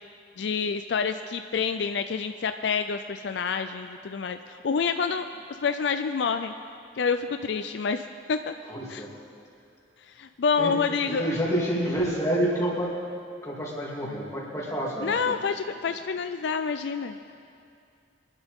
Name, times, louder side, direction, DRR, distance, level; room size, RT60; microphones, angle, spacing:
voice 1, 0.4-6.5 7.0-8.5 8.9-9.1 10.1-11.3 15.0-17.2, left 5 dB, 65° left, 8 dB, 0.4 m, -28 dB
voice 2, 8.7-9.1 10.6-10.7 11.1-12.9 13.4-15.3, right 1 dB, 15° left, -5 dB, 3.0 m, -28 dB
24.0 x 11.5 x 3.6 m, 2.4 s
head